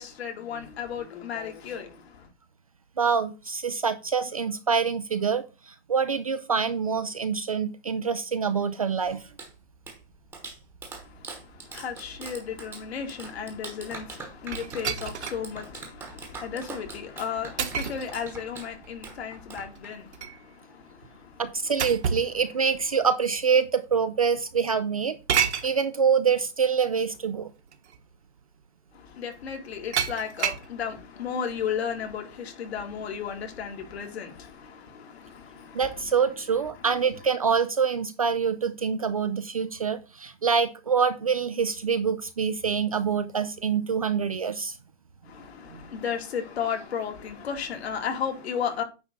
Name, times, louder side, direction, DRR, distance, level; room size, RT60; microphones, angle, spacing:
voice 1, 0.0-2.3 11.0-21.4 28.9-36.0 36.8-36.9 45.2-48.8, left 7 dB, 60° left, 2.4 m, -34 dB
voice 2, 3.0-9.3 21.4-25.2 25.6-27.5 35.7-44.8 45.7-45.8, right 6 dB, 35° right, 0.4 m, -26 dB
Clapping, 9.0-20.2, right 4 dB, 5° right, 1.0 m, -43 dB
sound 1, 14.5-15.4 16.0-16.1 17.6-18.1 19.7-20.4 21.8-22.3 23.3-23.4 25.3-25.7 27.1-27.2 27.7-28.0 29.9-30.7, right 7 dB, 70° right, 1.4 m, -28 dB
9.3 x 3.6 x 5.2 m
hypercardioid pair, 170°, 35 cm